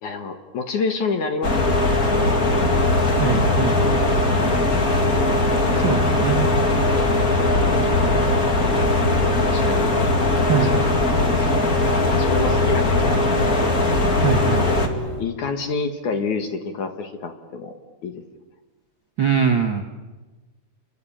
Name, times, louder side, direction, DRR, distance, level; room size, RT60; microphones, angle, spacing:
voice 1, 0.0-2.0 2.3-2.7 8.9-9.9 10.6-13.2 13.5-13.8 14.5-17.7 18.0-18.2, left 4 dB, 55° left, 6 dB, 2.7 m, -29 dB
sound 1, 1.4-14.9, left 2 dB, 30° left, 2.0 m, -19 dB
sound 2, 2.1-15.2, right 3 dB, 30° right, 5.6 m, -32 dB
voice 2, 3.2-3.8 5.8-6.5 10.5-10.7 14.2-14.7 19.2-19.8, right 7 dB, 50° right, 0 dB, 1.5 m, -22 dB
29.0 x 23.0 x 8.8 m, 1.2 s
omnidirectional pair, 4.7 m